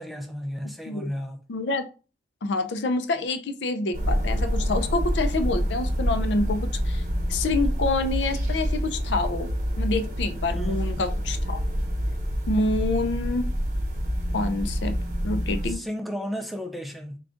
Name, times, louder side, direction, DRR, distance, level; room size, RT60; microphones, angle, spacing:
voice 1, 0.0-1.4 10.5-10.9 15.7-17.2, equal, ahead, 0.4 m, -34 dB
voice 2, 1.5-1.9 2.4-7.0 7.3-9.5 9.8-11.6 12.5-13.4 14.3-15.0 15.2-15.8, left 2 dB, 80° left, 0.5 m, -27 dB
sound 1, 3.9-15.7, equal, 45° right, 0.8 m, -27 dB
3.6 x 2.3 x 3.6 m
head